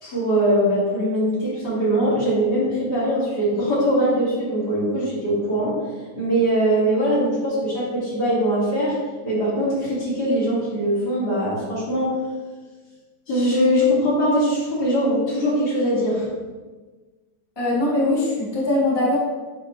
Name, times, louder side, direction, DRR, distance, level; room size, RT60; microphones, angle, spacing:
voice 1, 0.0-5.8 6.2-9.0 9.2-12.2 13.3-16.3, equal, 60° left, -7 dB, 2.5 m, -21 dB
voice 2, 17.6-19.2, left 1 dB, 15° left, -6 dB, 1.5 m, -21 dB
9.3 x 3.9 x 3.1 m, 1.3 s
omnidirectional pair, 2.0 m